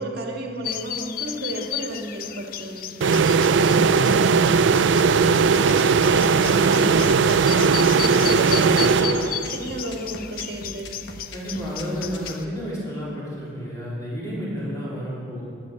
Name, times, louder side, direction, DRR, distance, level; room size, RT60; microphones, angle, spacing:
voice 1, 0.0-2.9 3.2-6.4 6.7-10.9, right 1 dB, 55° right, 2 dB, 1.6 m, -33 dB
sound 1, 0.6-12.4, left 11 dB, 50° left, 0.4 m, -34 dB
sound 2, 3.0-9.7, right 5 dB, 85° right, 0.4 m, -18 dB
sound 3, 5.0-12.3, left 2 dB, 75° left, 1.1 m, -39 dB
voice 2, 6.7-7.1 11.3-15.4, equal, 20° left, -7 dB, 3.8 m, -31 dB
12.5 x 9.6 x 6.4 m, 2.4 s
head